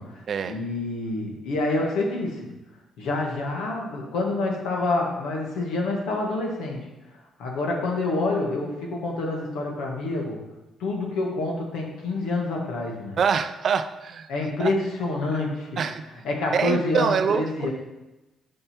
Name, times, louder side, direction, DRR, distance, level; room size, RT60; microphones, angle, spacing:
voice 1, 0.0-2.5 3.0-6.9 7.4-10.4 10.8-13.2 14.3-15.8 16.2-17.7, left 2 dB, 90° left, 0 dB, 1.6 m, -27 dB
voice 2, 13.2-14.3 14.6-14.7 15.8-16.0 16.5-17.7, right 6 dB, 55° right, 9 dB, 0.4 m, -25 dB
5.5 x 5.4 x 5.7 m, 1.0 s
cardioid pair, 90°, 0 cm